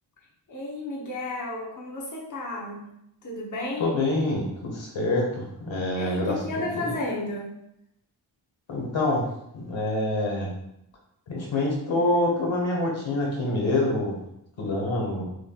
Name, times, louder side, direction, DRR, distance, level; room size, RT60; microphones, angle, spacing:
voice 1, 0.5-2.8 3.2-3.9 5.9-7.5, left 2 dB, 40° left, -4 dB, 1.0 m, -33 dB
voice 2, 3.8-6.9 8.7-10.5 11.3-14.2 14.6-15.2, left 2 dB, 80° left, -2 dB, 1.3 m, -26 dB
6.3 x 3.3 x 2.3 m, 0.79 s
wide cardioid pair, 115°, 46 cm